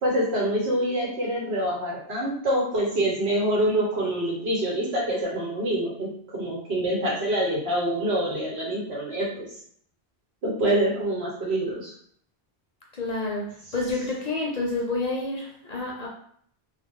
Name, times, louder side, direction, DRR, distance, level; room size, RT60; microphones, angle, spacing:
voice 1, 0.0-6.1 6.3-9.5 10.4-11.9, right 1 dB, 85° right, -4 dB, 1.2 m, -26 dB
voice 2, 12.9-13.5 13.7-16.1, left 2 dB, 50° left, -2 dB, 0.6 m, -28 dB
2.3 x 2.1 x 3.5 m, 0.63 s
omnidirectional pair, 1.1 m